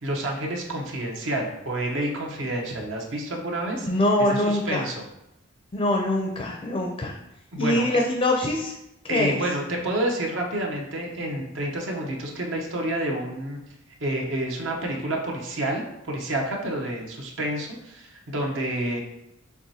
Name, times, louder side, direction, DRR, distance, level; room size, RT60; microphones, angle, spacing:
voice 1, 0.0-3.9 4.2-5.0 7.5-8.0 9.1-13.6 14.0-19.0, right 1 dB, 75° right, 0 dB, 0.8 m, -29 dB
voice 2, 3.8-4.8 5.7-7.1 7.6-8.7 9.1-9.4, left 1 dB, 30° left, 1 dB, 0.4 m, -23 dB
4.7 x 3.3 x 2.7 m, 0.85 s
head